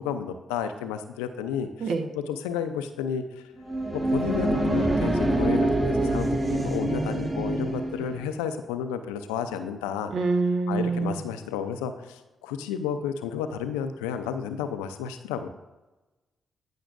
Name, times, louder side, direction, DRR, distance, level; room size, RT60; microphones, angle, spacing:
voice 1, 0.0-3.5 3.9-10.1 10.7-15.5, left 8 dB, 85° left, 9 dB, 0.5 m, -32 dB
sound 1, 3.6-8.2, right 1 dB, 25° right, 1.8 m, -25 dB
voice 2, 10.1-11.2, right 3 dB, 65° right, 5 dB, 1.1 m, -25 dB
14.5 x 5.9 x 2.6 m, 1.1 s
hypercardioid pair, 40°, 0 cm